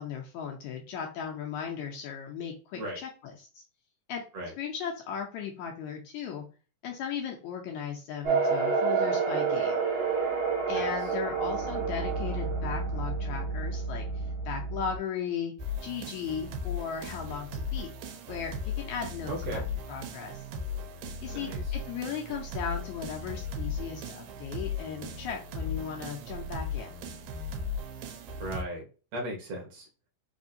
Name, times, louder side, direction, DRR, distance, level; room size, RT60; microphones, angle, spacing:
voice 1, 0.0-3.6 4.1-4.2 4.6-6.5 6.8-9.8 10.7-15.5 15.8-17.9 18.3-19.6 19.9-20.4 21.2-27.0, left 7 dB, 80° left, 1 dB, 1.8 m, -37 dB
sound 1, 8.2-15.0, right 5 dB, 45° right, 1.3 m, -29 dB
sound 2, 15.6-28.6, left 3 dB, 90° right, 2.3 m, -37 dB
voice 2, 19.3-19.7 21.3-21.6 28.4-28.8 29.1-29.9, right 1 dB, 65° right, -1 dB, 2.0 m, -36 dB
5.0 x 2.6 x 2.7 m, 0.36 s
omnidirectional pair, 3.8 m